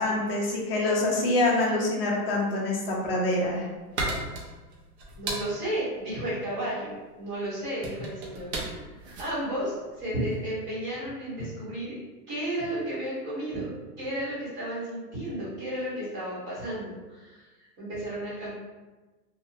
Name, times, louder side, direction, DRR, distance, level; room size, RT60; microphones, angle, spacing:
voice 1, 0.0-3.7, left 2 dB, 40° left, -2 dB, 0.5 m, -25 dB
sound 1, 3.1-10.5, right 2 dB, 45° right, 0.4 m, -36 dB
voice 2, 5.2-8.9 9.2-12.0 12.3-13.7 14.0-17.5 17.8-18.5, right 1 dB, 25° right, -9 dB, 1.0 m, -33 dB
2.6 x 2.1 x 2.6 m, 1.2 s
hypercardioid pair, 160°, 49 cm